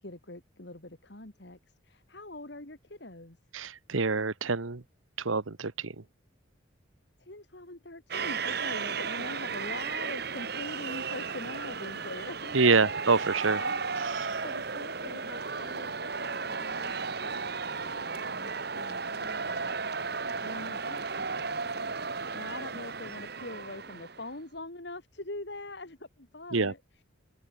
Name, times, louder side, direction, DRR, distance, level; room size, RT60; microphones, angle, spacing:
voice 1, 0.0-3.4 7.2-12.8 13.1-13.8 14.1-16.9 17.2-19.8 20.1-21.8 22.1-26.8, left 2 dB, 55° left, 2.4 m, -44 dB
voice 2, 3.5-4.8 5.2-5.9 12.5-13.6 14.2-14.4 26.5-26.7, right 4 dB, 80° right, 1.2 m, -26 dB
sound 1, 8.1-24.3, right 5 dB, 50° right, 1.4 m, -34 dB
open air
head